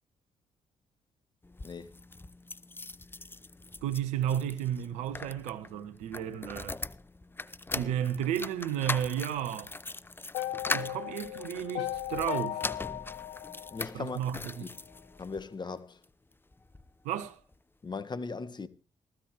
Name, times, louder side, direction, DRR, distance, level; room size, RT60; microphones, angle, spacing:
sound 1, 1.4-15.4 16.0-16.9 17.2-17.3 17.5-17.6, left 2 dB, 20° left, 0.8 m, -41 dB
voice 1, 3.8-6.8 7.7-9.7 10.7-12.8 13.9-14.7 17.0-17.4, right 10 dB, 80° right, 1.3 m, -33 dB
sound 2, 10.3-14.5, left 14 dB, 80° left, 0.9 m, -37 dB
voice 2, 13.7-14.7 15.2-16.0 17.8-18.7, left 4 dB, 40° left, 1.7 m, -39 dB
15.5 x 15.5 x 3.4 m
hypercardioid pair, 45°, 12 cm